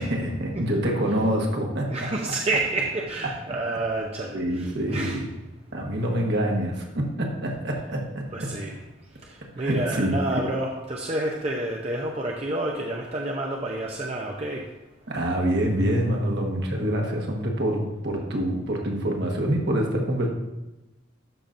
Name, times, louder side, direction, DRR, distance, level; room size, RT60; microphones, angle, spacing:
voice 1, 0.0-2.3 4.3-5.3 5.7-8.5 9.6-10.4 15.1-20.3, right 1 dB, 60° right, 0 dB, 1.4 m, -26 dB
voice 2, 1.9-5.2 8.3-8.7 9.6-14.6, right 2 dB, 30° right, 0 dB, 0.6 m, -29 dB
12.0 x 5.8 x 2.6 m, 1.0 s
head